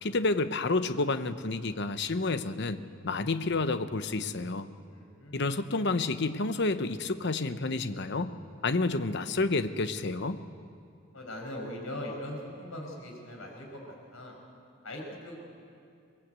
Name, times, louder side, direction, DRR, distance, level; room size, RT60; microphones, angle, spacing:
voice 1, 0.0-4.7 5.3-8.3 8.6-10.4, left 3 dB, 55° left, 11 dB, 0.9 m, -29 dB
voice 2, 4.9-5.5 11.1-14.3 14.8-15.4, left 1 dB, 80° left, 1 dB, 5.9 m, -40 dB
23.0 x 20.0 x 8.2 m, 2.5 s
head